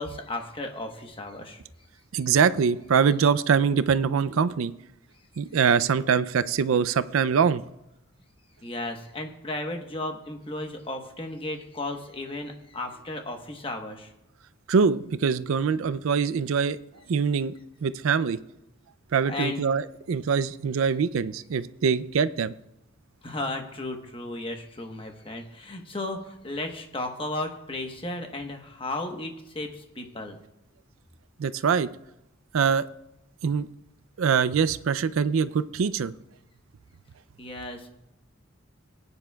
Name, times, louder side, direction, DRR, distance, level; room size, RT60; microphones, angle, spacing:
voice 1, 0.0-1.6 8.6-14.1 19.3-19.6 23.2-30.4 37.4-37.9, left 2 dB, 25° left, 4 dB, 1.1 m, -34 dB
voice 2, 2.1-4.7 5.4-7.6 14.7-16.8 17.1-17.5 17.8-18.4 19.1-22.5 31.4-31.9 32.5-32.9 33.4-33.7 34.2-36.1, right 6 dB, 75° right, 14 dB, 0.4 m, -23 dB
19.0 x 9.7 x 2.3 m, 0.88 s
head